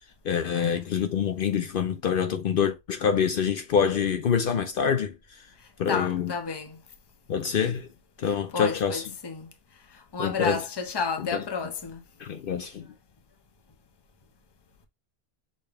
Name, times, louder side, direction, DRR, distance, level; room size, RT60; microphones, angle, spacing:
voice 1, 0.2-5.4 5.8-6.3 7.3-7.9 8.2-9.0 10.2-10.6 11.3-11.4 12.2-12.9, left 7 dB, 65° left, 0.7 m, -26 dB
voice 2, 5.9-6.8 8.5-9.5 10.1-12.0, left 5 dB, 25° left, 0.7 m, -31 dB
6.4 x 2.2 x 3.3 m
omnidirectional pair, 1.0 m